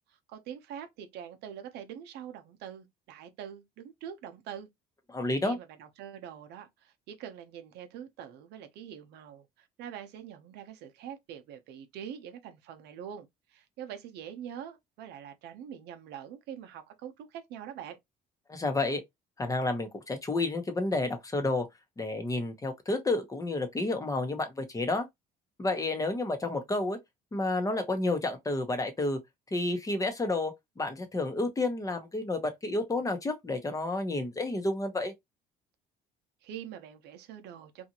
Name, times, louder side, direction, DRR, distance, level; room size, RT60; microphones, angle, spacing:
voice 1, 0.3-4.7 5.4-18.0 36.4-37.9, right 9 dB, 80° right, 0.6 m, -44 dB
voice 2, 5.1-5.6 18.5-19.0 19.4-21.7 22.0-25.1 25.6-27.0 27.3-29.2 29.5-35.1, left 2 dB, 20° left, 0.8 m, -30 dB
2.7 x 2.4 x 2.7 m
cardioid pair, 110°, 17 cm